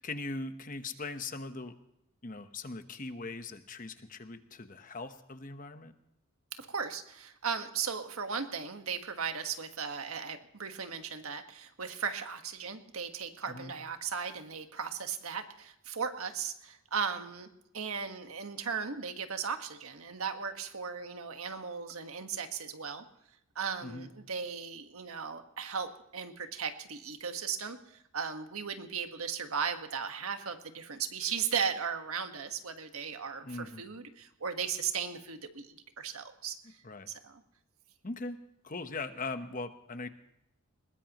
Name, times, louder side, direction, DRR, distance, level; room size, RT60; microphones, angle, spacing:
voice 1, 0.0-1.7 2.2-5.9 13.5-13.7 23.8-24.1 33.4-33.8 36.8-37.1 38.0-38.4 38.6-40.1, left 3 dB, 40° left, 9 dB, 1.0 m, -40 dB
voice 2, 6.5-17.5 17.7-23.0 23.5-37.4, right 6 dB, 80° right, 7 dB, 1.5 m, -37 dB
21.0 x 19.5 x 3.0 m, 0.81 s
head